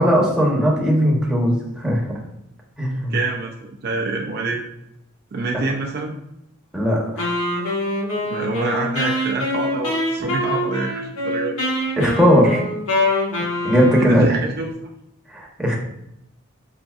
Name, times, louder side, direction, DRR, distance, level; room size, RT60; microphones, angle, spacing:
voice 1, 0.0-2.0 2.8-3.1 6.7-7.0 12.0-12.6 13.6-14.4 15.3-15.7, equal, 5° right, -3 dB, 0.8 m, -17 dB
voice 2, 3.1-4.6 5.3-6.2 8.2-11.6 14.0-14.7, right 3 dB, 50° right, 0 dB, 0.4 m, -26 dB
Wind instrument woodwind instrument, 7.2-14.3, left 1 dB, 85° left, 1.2 m, -24 dB
5.6 x 2.6 x 2.3 m, 0.82 s
head